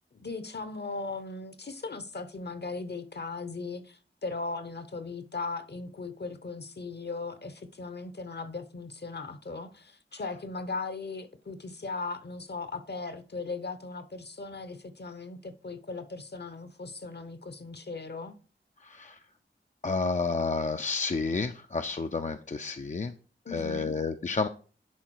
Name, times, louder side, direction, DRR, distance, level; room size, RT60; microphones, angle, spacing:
voice 1, 0.1-18.3 23.4-24.0, left 3 dB, 55° left, 0.9 m, -38 dB
voice 2, 18.8-19.2 19.8-23.1 23.5-24.5, left 4 dB, 40° left, 0.5 m, -30 dB
10.5 x 3.6 x 4.6 m
wide cardioid pair, 45°, 20 cm